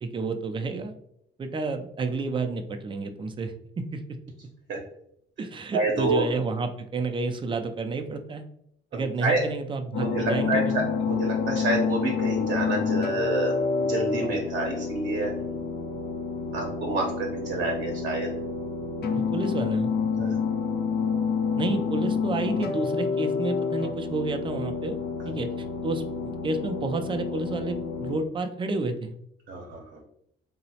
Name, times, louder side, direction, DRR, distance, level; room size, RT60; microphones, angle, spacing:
voice 1, 0.0-0.9 1.4-4.0 5.4-8.4 8.9-10.9 19.1-19.9 21.6-25.0 25.2-25.5 25.8-29.1, right 3 dB, 25° right, 6 dB, 0.3 m, -30 dB
voice 2, 5.7-6.3 8.9-9.4 10.0-10.6 11.0-15.3 16.5-18.3 20.1-20.3 25.2-25.3 29.5-29.8, right 2 dB, 60° right, -1 dB, 0.7 m, -28 dB
sound 1, 9.9-28.2, left 5 dB, 55° left, 0.5 m, -28 dB
2.9 x 2.0 x 2.7 m, 0.72 s
cardioid pair, 90°, 20 cm